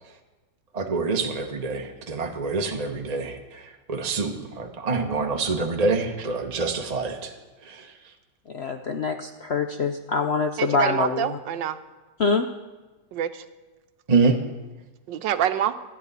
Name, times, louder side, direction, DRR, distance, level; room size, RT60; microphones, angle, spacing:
voice 1, 0.7-7.3 7.6-7.9 14.1-14.4, right 4 dB, 25° right, 3 dB, 1.0 m, -26 dB
voice 2, 8.5-11.3 12.2-12.4, left 4 dB, 70° left, 5 dB, 0.6 m, -24 dB
voice 3, 10.6-11.8 13.1-13.4 15.1-15.7, right 10 dB, 80° right, 11 dB, 1.4 m, -26 dB
26.5 x 10.0 x 4.1 m, 1.2 s
omnidirectional pair, 2.0 m